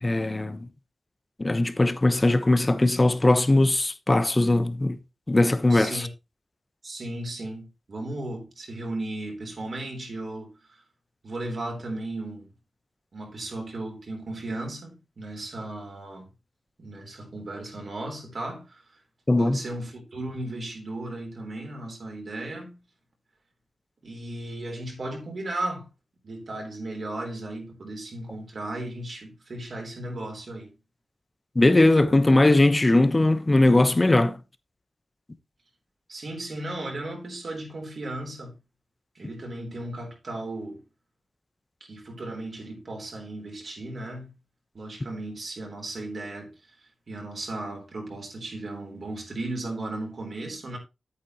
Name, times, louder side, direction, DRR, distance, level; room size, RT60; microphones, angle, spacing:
voice 1, 0.0-0.7 1.4-5.0 5.3-6.0 19.3-19.6 31.5-34.4, left 2 dB, 30° left, 1.0 m, -20 dB
voice 2, 5.7-6.1 6.8-10.8 11.2-12.5 13.1-16.3 16.8-19.0 19.4-22.8 24.0-25.9 26.2-30.7 36.1-38.6 39.2-40.8 41.9-44.3 44.7-50.8, right 2 dB, 60° right, 3.7 m, -35 dB
8.6 x 8.4 x 3.0 m
cardioid pair, 45°, 0 cm